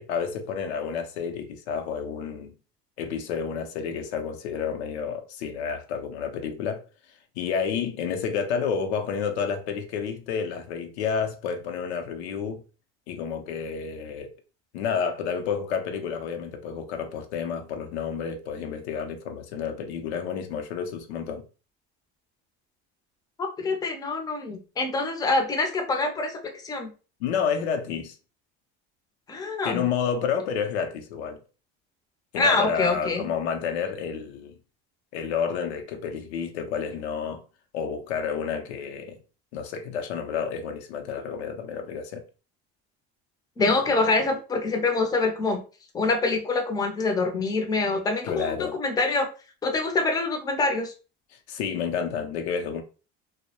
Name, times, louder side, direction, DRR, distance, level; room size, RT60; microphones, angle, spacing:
voice 1, 0.0-2.5 3.0-6.9 7.4-12.6 13.1-14.3 14.7-21.4 27.2-28.2 29.6-31.4 32.3-34.5 35.1-37.4 37.7-39.2 39.5-42.3 48.2-48.8 51.5-52.8, left 6 dB, 90° left, 0.5 m, -30 dB
voice 2, 23.6-26.4 26.6-26.9 29.3-29.9 32.4-33.3 43.6-45.6 45.9-49.3 49.6-50.9, left 3 dB, 10° left, 0.4 m, -25 dB
2.2 x 2.0 x 2.7 m
supercardioid pair, 105°, 32 cm